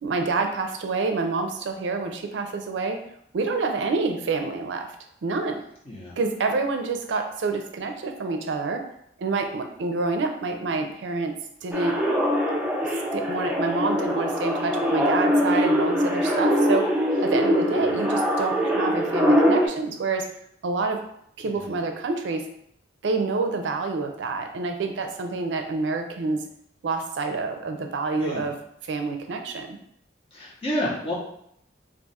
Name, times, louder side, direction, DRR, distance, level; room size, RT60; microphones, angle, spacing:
voice 1, 0.0-3.0 3.3-5.0 5.2-5.6 6.2-8.8 9.2-11.3 11.6-12.0 12.8-16.9 17.2-20.3 20.6-21.0 21.4-22.4 23.0-26.4 26.8-28.6 28.9-29.8, right 3 dB, 80° right, 5 dB, 0.4 m, -27 dB
sound 1, 11.7-19.7, equal, 10° right, 0.4 m, -22 dB
voice 2, 21.4-21.7 28.2-28.4 30.3-31.1, equal, 30° left, -5 dB, 0.9 m, -30 dB
2.4 x 2.3 x 4.1 m, 0.72 s
head